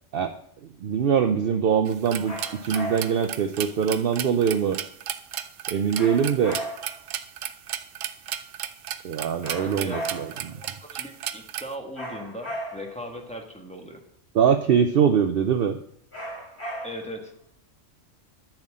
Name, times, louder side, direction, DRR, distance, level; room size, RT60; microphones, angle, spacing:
voice 1, 0.8-2.4 2.6-4.8 5.7-6.6 9.0-10.6 14.3-15.8, right 7 dB, 60° right, 8 dB, 0.7 m, -23 dB
sound 1, 1.9-11.7, right 10 dB, 90° right, 1.0 m, -35 dB
sound 2, 2.2-3.3 5.9-7.0 9.4-10.5 11.9-13.0 16.1-17.2, right 1 dB, 55° left, 3.2 m, -36 dB
voice 2, 9.6-10.0 10.5-14.0 16.8-17.3, equal, 5° left, 2 dB, 1.3 m, -38 dB
7.4 x 5.9 x 7.5 m, 0.67 s
omnidirectional pair, 1.3 m